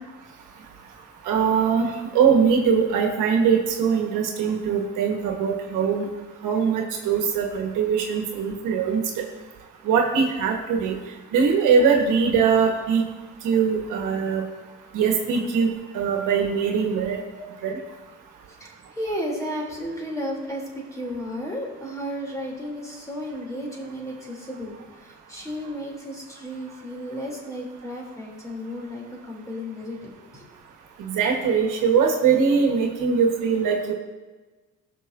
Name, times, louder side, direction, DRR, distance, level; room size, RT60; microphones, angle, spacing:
voice 1, 1.2-1.9 2.1-6.1 6.4-9.0 9.8-11.0 11.3-13.0 13.4-14.4 14.9-17.2 17.6-17.8 31.0-33.9, right 6 dB, 90° right, 2 dB, 1.3 m, -21 dB
voice 2, 18.6-30.5, equal, 10° left, -2 dB, 2.9 m, -33 dB
17.0 x 6.4 x 2.6 m, 1.2 s
cardioid pair, 90°, 30 cm